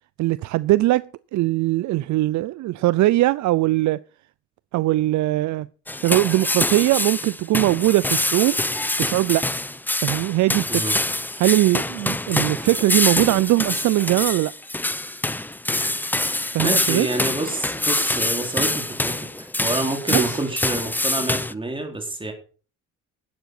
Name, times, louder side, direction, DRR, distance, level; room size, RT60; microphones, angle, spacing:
voice 1, 0.2-4.0 4.7-5.7 6.0-8.6 9.0-9.4 10.0-10.9 11.4-14.5 16.5-17.1 20.1-20.4, right 17 dB, 70° right, 0.4 m, -20 dB
sound 1, 5.9-21.5, left 1 dB, 5° left, 0.6 m, -25 dB
voice 2, 16.6-19.2 19.6-22.3, right 2 dB, 15° right, 3.9 m, -27 dB
12.0 x 8.0 x 6.0 m
cardioid pair, 90°, 30 cm